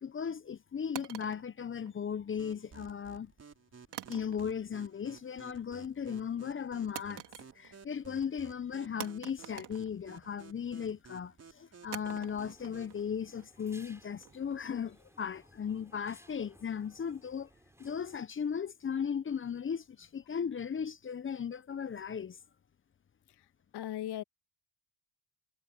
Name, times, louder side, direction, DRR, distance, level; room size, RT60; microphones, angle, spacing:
voice 1, 0.0-3.3 4.1-7.2 7.6-17.5 17.8-22.4, left 7 dB, 25° left, 0.8 m, -37 dB
sound 1, 0.9-2.3 3.9-4.8 5.1-5.5 6.9-7.9 8.2-8.3 9.0-10.5 11.9-14.9, right 13 dB, 65° right, 4.0 m, -47 dB
sound 2, 2.4-13.0, right 5 dB, 35° right, 5.8 m, -55 dB
sound 3, 12.2-18.2, right 1 dB, 5° right, 3.4 m, -61 dB
voice 2, 23.3-24.2, left 12 dB, 60° left, 1.5 m, -39 dB
supercardioid pair, 70°, 44 cm